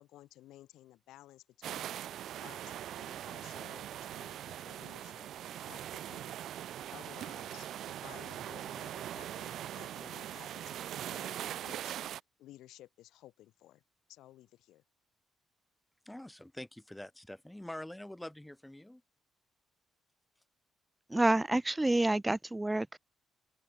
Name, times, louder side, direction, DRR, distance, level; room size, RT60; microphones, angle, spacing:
voice 1, 0.0-2.0 2.3-6.4 6.9-12.0 12.4-13.8 14.1-14.8, left 15 dB, 90° left, 3.1 m, -56 dB
sound 1, 1.6-12.2, right 11 dB, 75° right, 1.2 m, -41 dB
voice 2, 16.1-19.0, left 1 dB, 5° left, 3.6 m, -45 dB
voice 3, 21.1-23.0, right 2 dB, 10° right, 0.5 m, -28 dB
open air
cardioid pair, 90°, 0 cm